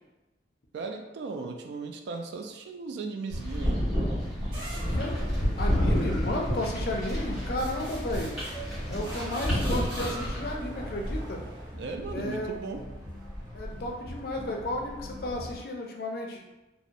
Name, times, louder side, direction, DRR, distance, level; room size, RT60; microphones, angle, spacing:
voice 1, 0.7-3.9 11.7-12.8, right 4 dB, 75° right, 5 dB, 0.3 m, -37 dB
sound 1, 3.3-10.5, equal, 5° right, 1.1 m, -29 dB
sound 2, 4.5-11.9, equal, 25° right, 1.2 m, -40 dB
voice 2, 4.9-5.2 5.6-8.4 8.9-11.4 12.1-12.5 13.5-16.4, left 1 dB, 55° left, 1 dB, 0.4 m, -33 dB
sound 3, 6.7-15.6, equal, 50° right, 1.1 m, -41 dB
2.8 x 2.0 x 2.5 m, 1.0 s
head